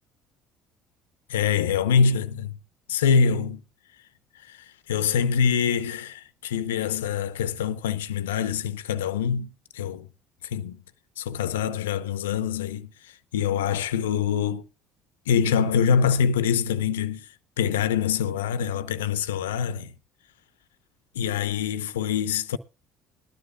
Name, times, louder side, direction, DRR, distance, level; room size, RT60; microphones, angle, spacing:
voice 1, 1.3-2.6 2.9-3.6 4.4-10.1 10.4-10.8 11.2-14.6 15.3-17.3 17.6-19.9 21.1-22.6, left 7 dB, 85° left, 0.7 m, -25 dB
20.0 x 13.0 x 2.3 m
hypercardioid pair, 65°, 0 cm